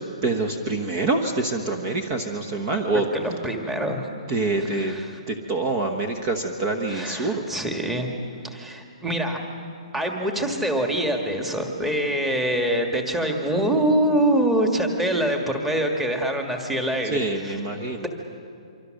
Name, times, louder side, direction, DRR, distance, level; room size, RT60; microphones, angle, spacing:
voice 1, 0.2-3.1 4.3-5.0 5.3-7.4 17.1-18.0, right 3 dB, 25° right, 5 dB, 1.1 m, -26 dB
voice 2, 3.1-4.1 4.6-5.2 6.9-8.1 8.5-9.4 9.9-17.5 18.0-18.1, right 1 dB, 5° right, 2 dB, 1.6 m, -25 dB
25.5 x 25.0 x 6.5 m, 2.3 s
hypercardioid pair, 170°, 4 cm